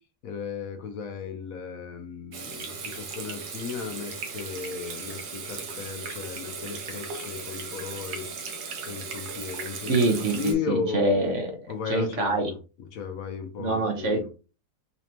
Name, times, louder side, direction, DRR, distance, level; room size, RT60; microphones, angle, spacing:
voice 1, 0.2-8.3 8.9-11.0 11.7-14.3, left 6 dB, 70° left, 6 dB, 1.0 m, -35 dB
Water tap faucet / Sink (filling or washing), 2.3-10.5, right 4 dB, 85° right, 1.4 m, -37 dB
voice 2, 9.9-11.5 11.9-12.5 13.6-14.3, right 2 dB, 55° right, 4 dB, 1.1 m, -25 dB
4.1 x 3.1 x 2.8 m, 0.34 s
omnidirectional pair, 1.6 m